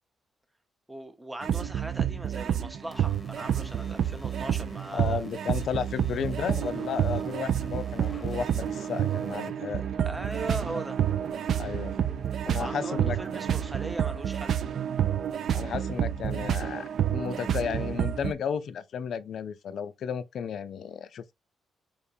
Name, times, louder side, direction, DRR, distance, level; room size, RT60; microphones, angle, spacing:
voice 1, 0.9-5.2 10.0-11.0 12.6-14.6, right 1 dB, 10° right, 0.7 m, -39 dB
sound 1, 1.4-18.3, right 9 dB, 55° right, 0.4 m, -29 dB
sound 2, 2.9-9.5, left 3 dB, 20° left, 0.8 m, -50 dB
voice 2, 4.9-9.9 11.5-11.9 12.5-13.2 15.5-21.3, left 7 dB, 55° left, 0.4 m, -33 dB
Bowed string instrument, 8.0-14.6, right 8 dB, 80° right, 1.3 m, -45 dB
4.6 x 3.5 x 2.6 m
cardioid pair, 170°, 0 cm